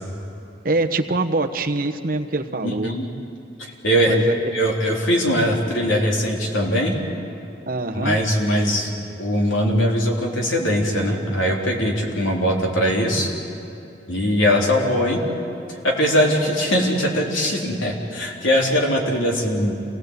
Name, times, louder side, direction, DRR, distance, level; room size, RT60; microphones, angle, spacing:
voice 1, 0.6-3.0 4.1-4.5 7.7-8.2, right 2 dB, 45° right, 5 dB, 1.1 m, -24 dB
voice 2, 2.6-3.1 3.6-4.2 4.5-7.0 7.9-8.9 9.2-13.3 14.1-15.2 15.7-19.7, equal, 85° left, -1 dB, 3.7 m, -21 dB
28.0 x 18.0 x 8.2 m, 2.8 s
head